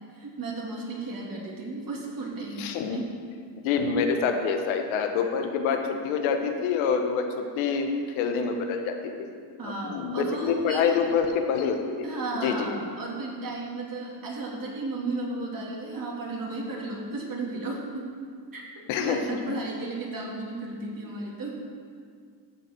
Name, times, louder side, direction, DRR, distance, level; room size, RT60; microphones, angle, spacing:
voice 1, 0.1-3.1 9.6-11.0 12.0-18.1 18.5-18.6 18.9-21.6, right 2 dB, 45° right, -3 dB, 2.6 m, -34 dB
voice 2, 2.6-3.0 3.6-5.8 6.0-7.9 8.1-9.3 9.6-12.1 12.4-12.7 18.9-19.4, left 6 dB, 90° left, 5 dB, 1.0 m, -26 dB
14.5 x 5.1 x 4.4 m, 2.1 s
supercardioid pair, 75°, 47 cm